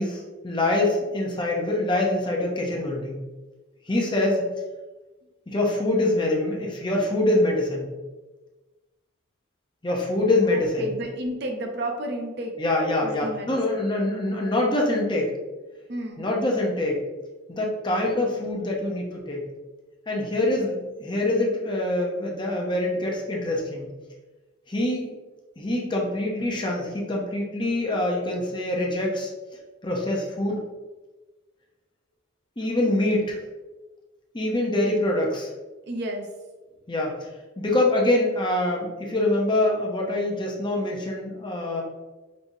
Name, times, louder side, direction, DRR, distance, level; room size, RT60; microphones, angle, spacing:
voice 1, 0.0-3.2 3.9-4.4 5.5-7.9 9.8-10.9 12.6-15.3 16.2-17.0 17.5-19.5 20.1-23.9 24.7-25.1 25.6-29.3 29.8-30.6 32.6-33.4 34.3-35.5 36.9-37.3 37.6-41.8, left 1 dB, 25° left, -1 dB, 0.7 m, -25 dB
voice 2, 10.4-12.6 13.0-13.8 15.9-16.2 35.8-36.3, right 1 dB, 55° right, 3 dB, 0.6 m, -32 dB
5.3 x 3.2 x 2.7 m, 1.2 s
head